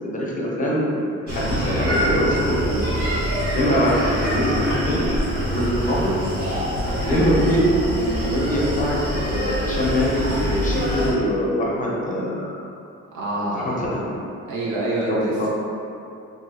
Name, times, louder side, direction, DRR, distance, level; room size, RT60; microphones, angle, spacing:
voice 1, 0.0-2.9 3.5-5.0 5.5-6.1 7.0-9.0 9.3-12.5 13.5-14.1 15.0-15.5, equal, 25° left, -5 dB, 0.6 m, -23 dB
Screaming, 1.3-11.1, equal, 50° right, 1.1 m, -25 dB
voice 2, 13.1-14.0 14.5-15.5, right 1 dB, 75° right, -5 dB, 0.6 m, -26 dB
2.7 x 2.6 x 2.3 m, 2.6 s
cardioid pair, 90°, 30 cm